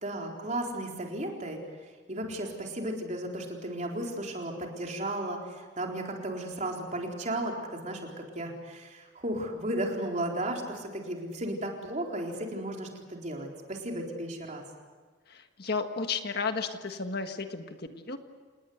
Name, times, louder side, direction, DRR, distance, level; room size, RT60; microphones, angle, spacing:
voice 1, 0.0-1.6 2.1-14.6, right 1 dB, 40° right, 0 dB, 4.1 m, -34 dB
voice 2, 15.3-17.6 18.0-18.2, left 4 dB, 55° left, 7 dB, 1.6 m, -32 dB
28.5 x 19.5 x 8.1 m, 1.4 s
head